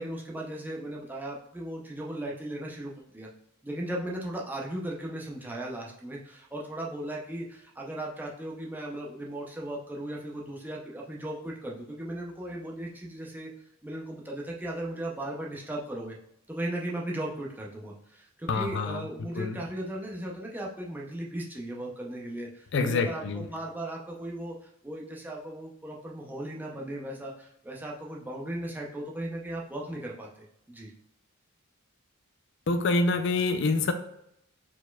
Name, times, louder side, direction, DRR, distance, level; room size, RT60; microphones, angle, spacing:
voice 1, 0.0-3.3 3.6-13.5 13.8-16.2 16.5-30.9, right 1 dB, 10° right, -3 dB, 0.5 m, -37 dB
voice 2, 18.5-19.0 19.4-19.6 22.7-23.4 32.7-33.9, left 3 dB, 55° left, 8 dB, 0.4 m, -26 dB
4.5 x 4.1 x 2.3 m, 0.77 s
head